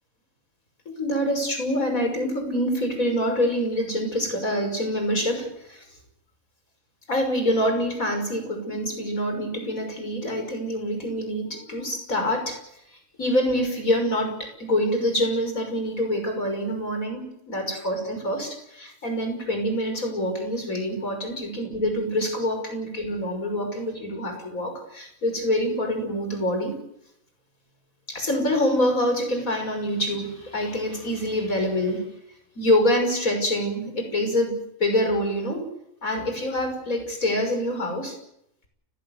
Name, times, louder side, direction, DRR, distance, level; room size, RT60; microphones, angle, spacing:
voice 1, 0.9-5.8 7.1-12.6 12.9-26.7 28.1-32.0 32.6-35.7 36.0-38.2, equal, 90° left, 5 dB, 6.4 m, -26 dB
30.0 x 17.0 x 8.0 m, 0.78 s
omnidirectional pair, 1.4 m